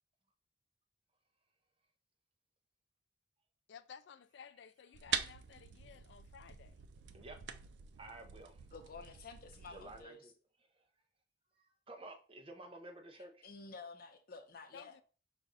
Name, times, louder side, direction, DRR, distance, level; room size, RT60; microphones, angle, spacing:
voice 1, 3.7-6.8 14.7-15.0, left 7 dB, 65° left, 0.3 m, -55 dB
sound 1, 4.9-10.0, right 8 dB, 65° right, 0.4 m, -44 dB
voice 2, 8.0-8.7 9.7-10.3 10.7-10.9 11.5-13.4, right 2 dB, 30° right, 0.7 m, -52 dB
voice 3, 8.7-10.2 13.1-15.0, left 4 dB, 50° left, 0.8 m, -51 dB
5.0 x 2.4 x 3.9 m
head